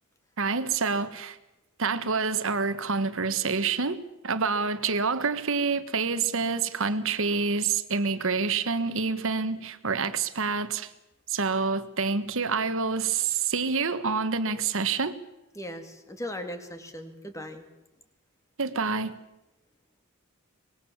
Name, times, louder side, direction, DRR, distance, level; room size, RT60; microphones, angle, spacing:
voice 1, 0.4-1.4 1.8-10.9 11.3-15.2 18.6-19.2, right 5 dB, 65° right, 1.4 m, -27 dB
voice 2, 15.5-17.7, left 1 dB, 15° left, 2.5 m, -38 dB
24.0 x 20.5 x 7.2 m
head